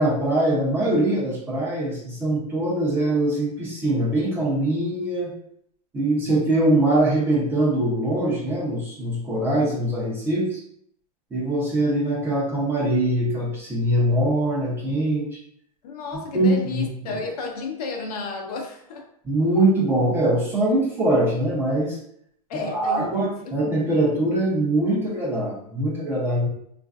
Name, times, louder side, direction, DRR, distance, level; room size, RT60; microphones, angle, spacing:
voice 1, 0.0-5.3 5.9-10.6 11.3-15.4 16.3-16.9 19.2-22.0 22.5-26.5, right 1 dB, 10° right, 0.6 m, -22 dB
voice 2, 15.8-19.1 22.5-23.3, left 4 dB, 75° left, 0.7 m, -32 dB
3.1 x 2.5 x 2.3 m
supercardioid pair, 160°, 20 cm